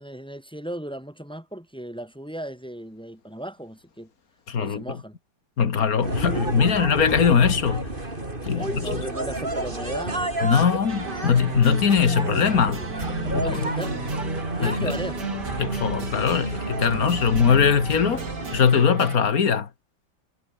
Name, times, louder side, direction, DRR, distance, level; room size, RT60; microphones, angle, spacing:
voice 1, 0.0-4.1 4.5-5.2 8.5-10.3 13.2-14.1 14.6-15.2, right 1 dB, ahead, 5.5 m, -36 dB
voice 2, 4.5-4.8 5.6-7.9 8.4-9.0 10.4-12.9 13.3-13.6 14.6-14.9 15.6-18.3 18.5-19.7, left 6 dB, 50° left, 2.0 m, -21 dB
sound 1, 6.0-18.6, right 2 dB, 25° right, 4.4 m, -31 dB
sound 2, 10.9-19.2, right 4 dB, 60° right, 4.3 m, -34 dB
omnidirectional pair, 2.1 m